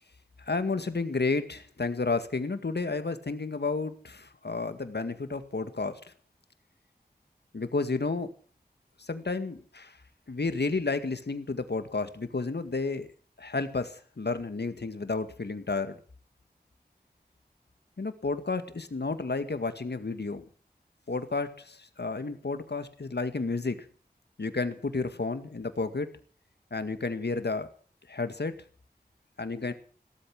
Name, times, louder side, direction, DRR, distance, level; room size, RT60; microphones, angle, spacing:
voice 1, 0.5-6.1 7.5-8.3 9.0-9.9 10.3-13.1 13.4-16.0 18.0-20.4 21.1-23.8 24.4-26.1 26.7-27.7 28.1-28.6 29.4-29.7, left 3 dB, 85° left, 10 dB, 2.0 m, -31 dB
17.5 x 13.5 x 6.1 m, 0.43 s
wide cardioid pair, 60°, 17 cm